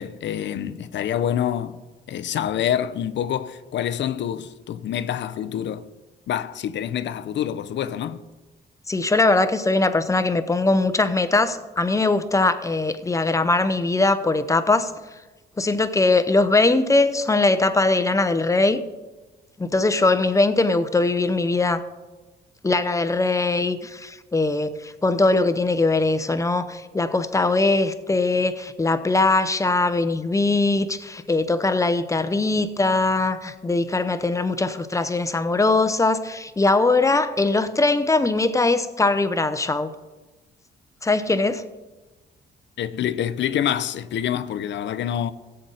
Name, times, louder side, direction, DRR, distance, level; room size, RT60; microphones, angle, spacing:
voice 1, 0.0-1.8 2.1-5.9 6.3-8.2 42.8-45.3, left 10 dB, 65° left, 0.6 m, -26 dB
voice 2, 8.9-14.9 15.6-18.8 19.6-21.8 22.6-39.9 41.0-41.6, left 3 dB, 15° left, 0.8 m, -21 dB
16.0 x 7.9 x 4.0 m
cardioid pair, 90°, 20 cm